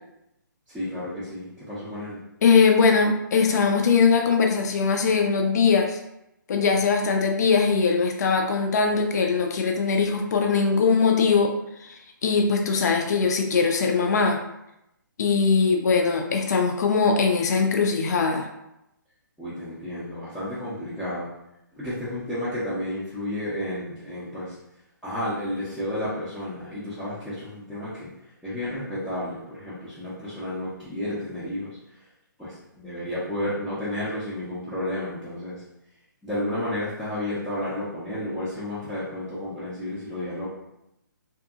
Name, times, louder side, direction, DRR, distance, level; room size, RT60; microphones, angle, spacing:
voice 1, 0.7-2.2 19.4-21.3 21.7-24.6 25.0-28.1 28.4-31.7 32.4-35.6 36.2-40.5, left 1 dB, ahead, -14 dB, 0.5 m, -31 dB
voice 2, 2.4-6.0 6.5-11.5 11.8-14.4 15.2-18.5, left 5 dB, 50° left, 3 dB, 0.4 m, -21 dB
2.7 x 2.5 x 2.3 m, 0.84 s
hypercardioid pair, 155°, 11 cm